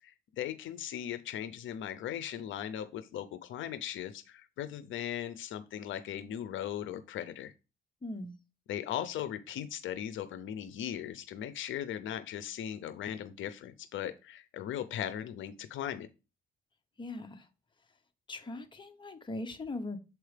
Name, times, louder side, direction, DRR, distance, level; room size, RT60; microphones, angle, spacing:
voice 1, 0.0-7.5 8.7-16.1, left 10 dB, 75° left, 0.6 m, -38 dB
voice 2, 8.0-8.3 17.0-17.5 18.3-20.0, left 2 dB, 25° left, 1.0 m, -40 dB
7.1 x 4.6 x 3.3 m
cardioid pair, 90°, 20 cm